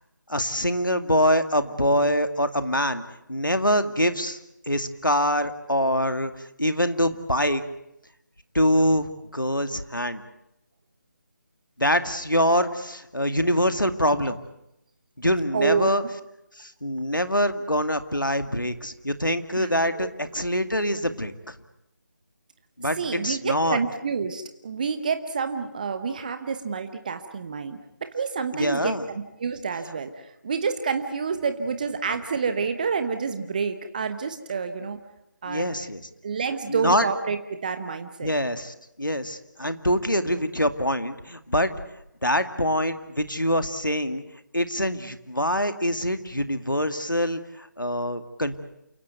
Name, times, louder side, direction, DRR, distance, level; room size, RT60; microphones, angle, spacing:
voice 1, 0.3-3.0 3.3-4.4 4.7-6.3 6.6-7.6 8.5-10.2 11.8-14.4 15.2-16.0 16.6-21.5 22.8-23.0 23.2-23.8 28.5-29.1 35.5-36.0 36.7-37.1 38.2-41.7 42.2-44.2 44.5-48.6, equal, 90° left, 9 dB, 2.2 m, -24 dB
voice 2, 15.5-15.9 19.6-20.1 23.0-35.0 35.4-35.8 36.2-38.3, right 5 dB, 25° right, 9 dB, 1.1 m, -28 dB
28.5 x 16.5 x 9.3 m, 0.86 s
figure-of-eight pair, 160°, 10 cm